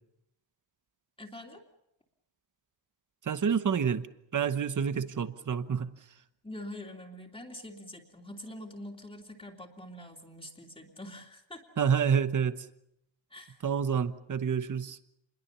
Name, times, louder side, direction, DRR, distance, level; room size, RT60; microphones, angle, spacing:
voice 1, 1.2-1.6 4.9-5.1 6.4-11.6 13.3-13.6, left 1 dB, 10° left, 1 dB, 2.9 m, -45 dB
voice 2, 3.2-4.1 4.3-5.9 11.8-12.5 13.6-15.0, right 7 dB, 40° right, 11 dB, 1.2 m, -28 dB
28.5 x 22.0 x 6.9 m, 0.79 s
wide cardioid pair, 150°, 45 cm